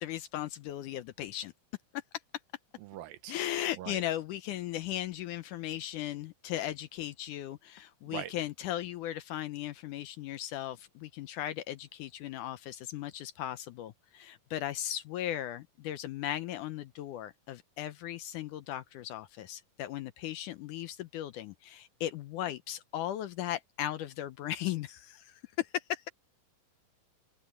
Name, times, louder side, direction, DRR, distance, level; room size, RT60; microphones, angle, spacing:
voice 1, 0.0-1.5 3.3-26.1, left 12 dB, 75° left, 2.0 m, -37 dB
voice 2, 2.8-3.4 3.8-4.0 8.1-8.3, right 13 dB, 85° right, 2.6 m, -41 dB
open air
omnidirectional pair, 4.1 m